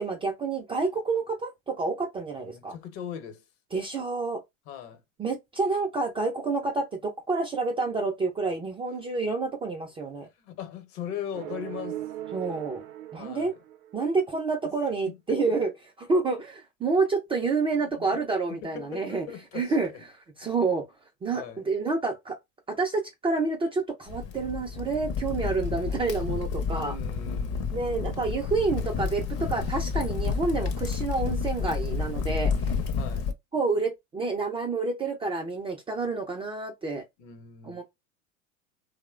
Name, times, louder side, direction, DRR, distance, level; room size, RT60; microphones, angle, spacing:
voice 1, 0.0-2.7 3.7-4.4 5.2-10.3 12.3-12.8 13.1-13.5 13.9-15.7 16.0-19.3 19.5-20.8 21.2-22.4 22.7-26.9 27.7-32.5 33.5-37.0 37.6-37.8, right 3 dB, 15° right, 0.3 m, -28 dB
voice 2, 2.4-3.4 4.7-5.0 10.4-12.0 13.2-13.5 14.6-14.7 15.1-15.4 17.4-20.0 20.4-20.5 21.3-21.7 26.9-28.2 33.0-33.3 37.2-37.8, left 8 dB, 65° left, 0.9 m, -40 dB
sound 1, 11.3-14.2, right 13 dB, 75° right, 0.6 m, -39 dB
Crackle, 24.1-33.3, left 5 dB, 40° left, 0.6 m, -30 dB
2.9 x 2.1 x 2.3 m
hypercardioid pair, 100°, 40 cm